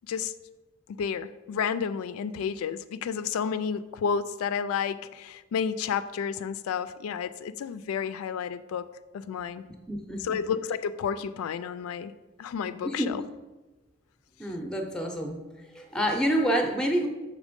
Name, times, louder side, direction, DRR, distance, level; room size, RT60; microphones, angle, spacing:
voice 1, 0.9-8.9 9.1-9.6 10.2-12.1 12.4-13.2, left 7 dB, 90° left, 13 dB, 0.3 m, -31 dB
voice 2, 9.9-10.4 12.8-13.2 14.4-15.4 15.7-17.1, equal, 5° left, 3 dB, 0.6 m, -28 dB
6.3 x 3.3 x 5.1 m, 1.1 s
head